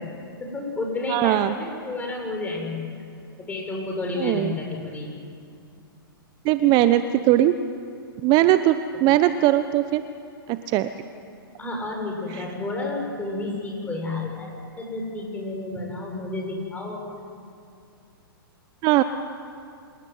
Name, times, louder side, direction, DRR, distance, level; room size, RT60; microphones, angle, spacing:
voice 1, 0.4-2.8 3.4-5.1 11.6-17.2, left 2 dB, 15° left, 0 dB, 7.2 m, -31 dB
voice 2, 1.1-1.5 4.2-4.5 6.4-7.5 8.2-10.0 10.5-10.9 12.3-12.4 18.8-19.0, right 14 dB, 35° right, 11 dB, 0.9 m, -20 dB
27.0 x 17.0 x 9.5 m, 2.4 s
hypercardioid pair, 125°, 12 cm